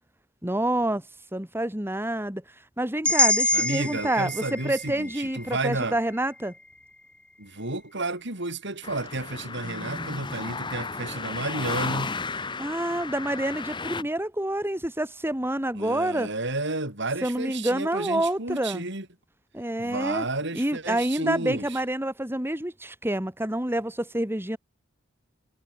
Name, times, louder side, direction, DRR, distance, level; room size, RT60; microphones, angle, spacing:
voice 1, 0.4-1.0 1.3-2.4 2.8-6.5 9.6-10.2 12.6-16.3 17.2-18.8 19.5-20.2 20.5-24.6, right 1 dB, 10° right, 3.0 m, -28 dB
sound 1, 3.0-7.1, left 2 dB, 5° left, 2.1 m, -27 dB
voice 2, 3.5-5.9 7.4-12.2 14.0-14.1 15.7-19.1 19.8-21.7, right 2 dB, 65° right, 5.8 m, -32 dB
sound 2, 8.8-14.0, left 4 dB, 25° left, 1.0 m, -34 dB
head